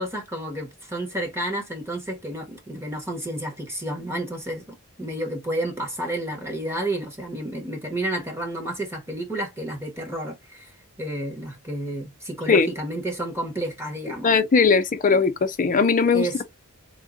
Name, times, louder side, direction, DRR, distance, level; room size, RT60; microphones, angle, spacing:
voice 1, 0.0-10.7 11.0-14.3 16.1-16.4, right 1 dB, 10° right, 1.1 m, -31 dB
voice 2, 14.2-16.4, left 5 dB, 35° left, 0.5 m, -19 dB
3.6 x 2.2 x 3.8 m
head